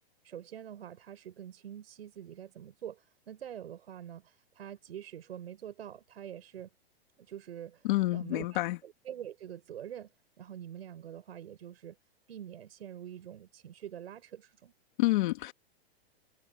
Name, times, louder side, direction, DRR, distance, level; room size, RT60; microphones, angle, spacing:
voice 1, 0.2-6.7 7.2-7.9 8.1-10.1 10.4-12.0 12.3-14.7, right 10 dB, 80° right, 6.1 m, -45 dB
voice 2, 7.8-8.8 15.0-15.5, left 19 dB, 55° left, 2.4 m, -28 dB
hypercardioid pair, 140°, 31 cm